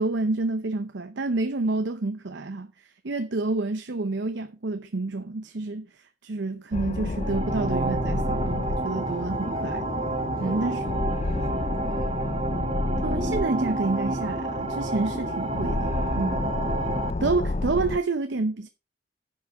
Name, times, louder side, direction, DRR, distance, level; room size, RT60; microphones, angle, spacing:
voice 1, 0.0-5.9 6.2-9.8 10.4-10.8 13.0-16.5 17.2-18.7, right 3 dB, 80° right, 0.7 m, -28 dB
sound 1, 6.7-18.0, left 2 dB, 35° left, 0.5 m, -30 dB
sound 2, 7.1-17.1, right 3 dB, 35° right, 0.6 m, -30 dB
voice 2, 10.4-12.2 16.8-17.4, equal, 5° left, 1.6 m, -47 dB
10.5 x 6.1 x 4.7 m
head